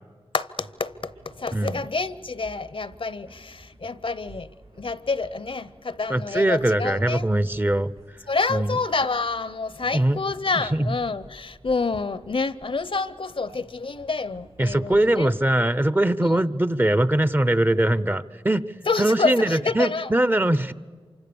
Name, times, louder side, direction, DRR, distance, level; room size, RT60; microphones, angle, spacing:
voice 1, 0.3-4.5 4.8-7.2 8.3-15.3 16.2-16.4 18.9-20.1, left 4 dB, 60° left, 0.7 m, -28 dB
sound 1, 0.6-16.2, right 2 dB, 85° right, 4.7 m, -52 dB
voice 2, 1.5-1.8 6.1-7.9 8.5-8.8 9.9-10.2 10.6-10.9 14.6-18.7 19.0-20.7, right 1 dB, 20° right, 0.6 m, -21 dB
27.5 x 25.0 x 7.0 m
wide cardioid pair, 80°, 10 cm